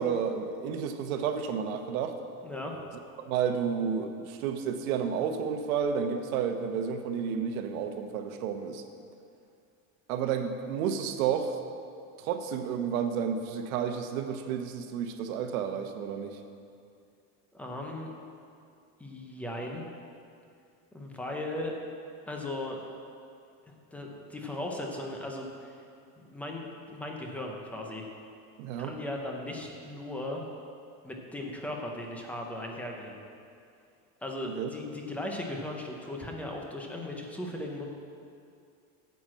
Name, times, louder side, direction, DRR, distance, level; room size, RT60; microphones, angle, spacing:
voice 1, 0.0-2.2 3.3-8.8 10.1-11.6 12.2-16.4 28.6-28.9 34.6-34.7, right 7 dB, 85° right, 7 dB, 1.1 m, -31 dB
voice 2, 2.4-2.8 17.5-18.1 19.0-19.9 20.9-21.7 22.3-22.8 23.9-25.8 26.3-28.1 28.8-30.4 31.0-33.2 34.2-37.9, left 1 dB, 5° left, 0 dB, 0.4 m, -37 dB
9.3 x 6.1 x 7.3 m, 2.4 s
cardioid pair, 175°, 41 cm